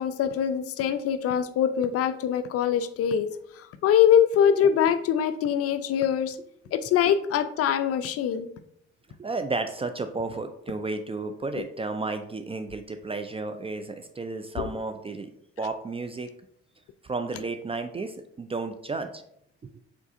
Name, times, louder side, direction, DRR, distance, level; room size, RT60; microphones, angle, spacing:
voice 1, 0.0-3.3 3.5-6.4 6.7-8.5 11.6-11.7 14.6-14.7, left 9 dB, 45° left, 11 dB, 0.4 m, -23 dB
voice 2, 9.2-15.3 15.6-16.3 17.0-19.2, right 3 dB, 20° right, 8 dB, 0.3 m, -32 dB
4.7 x 3.7 x 2.5 m, 0.70 s
hypercardioid pair, 50°, 33 cm